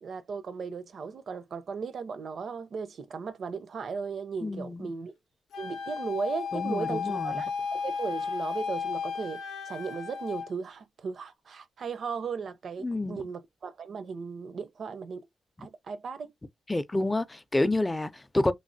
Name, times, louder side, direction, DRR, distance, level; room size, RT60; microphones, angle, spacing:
voice 1, 0.0-5.2 5.6-15.3 15.6-16.3, right 5 dB, 65° right, 0.5 m, -36 dB
voice 2, 4.4-4.9 6.5-7.4 12.8-13.2 16.7-18.5, left 2 dB, 20° left, 0.4 m, -29 dB
Wind instrument woodwind instrument, 5.5-10.5, left 6 dB, 90° left, 0.6 m, -34 dB
3.1 x 2.3 x 2.6 m
cardioid pair, 70°, 0 cm